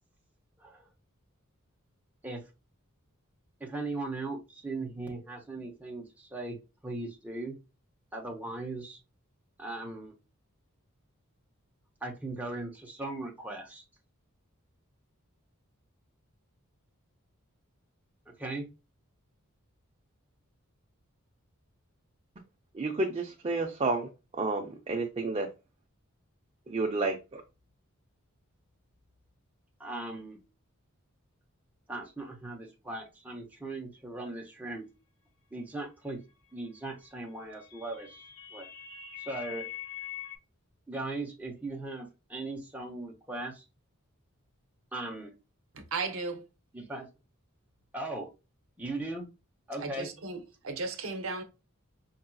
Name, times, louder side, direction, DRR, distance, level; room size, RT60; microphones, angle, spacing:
voice 1, 3.6-6.6 6.8-7.6 8.1-9.0 9.6-10.1 12.0-13.8 18.4-18.7 29.8-30.4 31.9-34.9 35.5-36.2 36.5-38.2 38.5-38.7 39.2-39.7 40.9-43.6 44.9-45.3 46.7-47.1 47.9-48.3 48.8-49.2 49.7-50.1, right 2 dB, 5° right, 0.8 m, -38 dB
voice 2, 22.7-25.5 26.7-27.4, right 3 dB, 30° right, 0.4 m, -31 dB
sound 1, 37.2-40.4, left 11 dB, 90° left, 0.8 m, -43 dB
voice 3, 45.7-46.5 49.8-51.4, right 3 dB, 65° right, 0.7 m, -35 dB
4.6 x 2.7 x 2.2 m
head